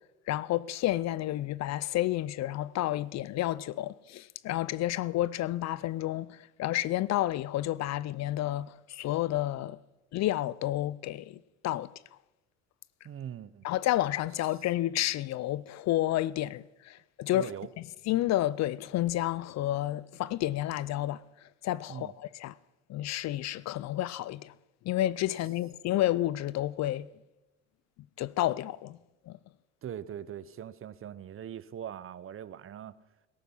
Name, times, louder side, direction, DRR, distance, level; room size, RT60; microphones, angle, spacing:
voice 1, 0.3-9.8 10.1-11.9 13.6-17.5 18.1-21.2 21.6-22.5 22.9-24.5 24.8-27.1 28.2-29.0 29.3-29.4, left 14 dB, 50° left, 0.5 m, -30 dB
voice 2, 13.0-13.7 17.2-17.7 21.9-22.1 29.8-33.0, right 9 dB, 35° right, 0.8 m, -41 dB
17.0 x 14.0 x 5.6 m
supercardioid pair, 85°, 36 cm